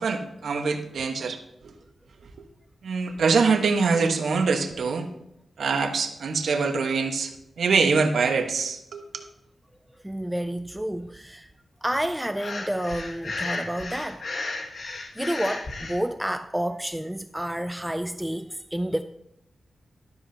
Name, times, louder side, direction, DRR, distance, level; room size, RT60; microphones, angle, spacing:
voice 1, 0.0-1.4 1.6-1.7 2.8-5.1 5.6-9.2, right 4 dB, 80° right, 1.3 m, -24 dB
voice 2, 10.0-11.5 11.8-14.3 14.9-19.0, right 1 dB, 5° right, 0.4 m, -30 dB
Breathing, 12.3-16.0, left 3 dB, 50° left, 1.4 m, -34 dB
13.0 x 12.5 x 2.8 m
wide cardioid pair, 150°, 0 cm